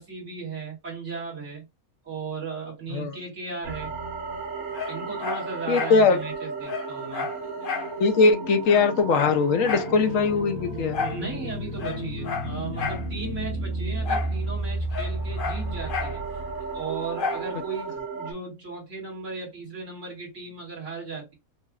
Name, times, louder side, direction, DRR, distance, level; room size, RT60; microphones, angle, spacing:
voice 1, 0.0-1.7 2.0-3.9 4.9-7.3 11.0-16.3 16.7-21.3, right 4 dB, 55° right, 2.5 m, -36 dB
sound 1, 3.6-18.3, right 2 dB, 80° right, 1.6 m, -33 dB
Dog, 4.7-6.0 6.3-6.4 6.7-7.9 8.3-8.4 8.6-9.9 10.9-11.2 11.7-13.1 14.0-14.4 14.6-16.2 17.2-17.5 18.0-18.1, left 5 dB, 50° left, 0.7 m, -32 dB
voice 2, 5.7-6.2 8.0-11.0, left 4 dB, 70° left, 1.0 m, -21 dB
5.6 x 2.5 x 2.3 m
omnidirectional pair, 1.5 m